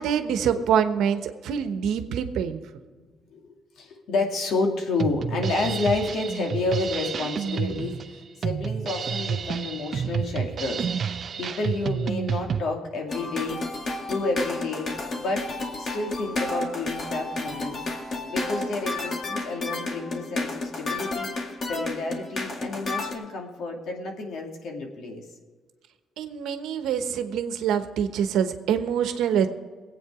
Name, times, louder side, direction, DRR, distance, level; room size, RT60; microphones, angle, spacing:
voice 1, 0.0-2.6 26.2-29.5, right 8 dB, 85° right, 8 dB, 1.1 m, -25 dB
voice 2, 3.0-13.6 14.1-17.8 18.1-25.2, left 3 dB, 75° left, 2 dB, 2.5 m, -30 dB
Drum kit, 5.0-12.6, right 7 dB, 50° right, 0.6 m, -29 dB
sound 1, 13.1-23.1, left 2 dB, 50° left, 2.0 m, -31 dB
21.0 x 8.7 x 4.9 m, 1.5 s
cardioid pair, 90°, 0 cm